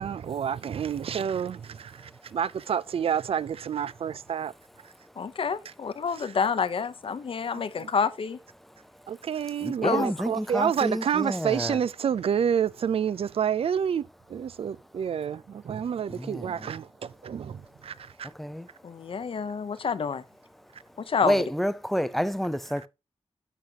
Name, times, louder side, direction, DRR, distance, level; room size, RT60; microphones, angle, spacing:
voice 1, 0.0-4.5 4.8-4.9 6.2-6.3 7.5-7.9 9.1-18.3 20.7-20.8, right 8 dB, 65° right, 0.4 m, -29 dB
voice 2, 5.2-8.4 9.8-10.1 18.8-20.2 21.0-21.4, left 6 dB, 60° left, 0.7 m, -28 dB
voice 3, 9.6-11.8 16.1-16.7 18.3-18.7 21.2-22.9, equal, ahead, 0.5 m, -29 dB
12.0 x 5.2 x 2.8 m
wide cardioid pair, 120°, 10 cm